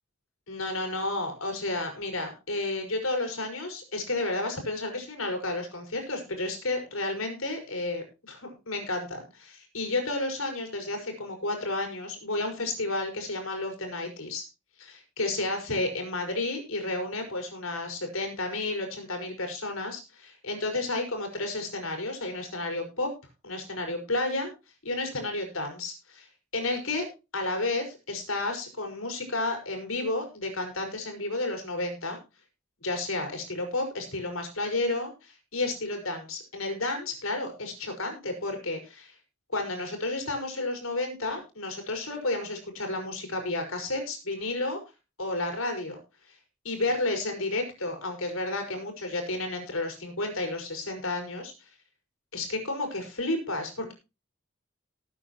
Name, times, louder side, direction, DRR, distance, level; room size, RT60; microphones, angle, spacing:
voice 1, 0.5-14.4 14.8-23.1 23.4-24.5 24.8-26.3 26.5-27.1 27.3-32.2 32.8-39.1 39.5-44.8 45.2-46.0 46.6-51.5 52.3-53.9, left 2 dB, 80° left, 4 dB, 5.1 m, -31 dB
19.0 x 9.1 x 3.0 m, 0.28 s
head